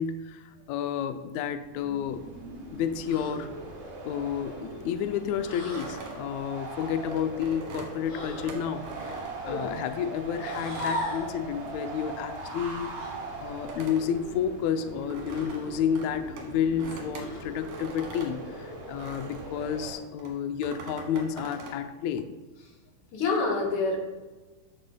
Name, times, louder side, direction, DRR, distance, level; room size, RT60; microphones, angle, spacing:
voice 1, 0.0-2.3 2.7-3.5 4.0-9.2 9.5-12.9 13.4-22.3, left 8 dB, 85° left, 8 dB, 1.5 m, -31 dB
sound 1, 1.6-20.0, right 2 dB, 55° right, 3.1 m, -40 dB
sound 2, 3.0-3.4 5.4-6.0 8.0-8.6 10.4-11.3 13.0-13.2 15.3-15.8 17.2-17.7, left 1 dB, 50° left, 3.0 m, -37 dB
sound 3, 5.6-9.9 10.4-11.9 12.2-19.6 20.2-21.8, right 3 dB, 70° right, 2.8 m, -44 dB
voice 2, 9.4-9.7 23.1-24.0, left 3 dB, 65° left, 1 dB, 2.7 m, -27 dB
13.5 x 6.7 x 2.2 m, 1.2 s
omnidirectional pair, 3.8 m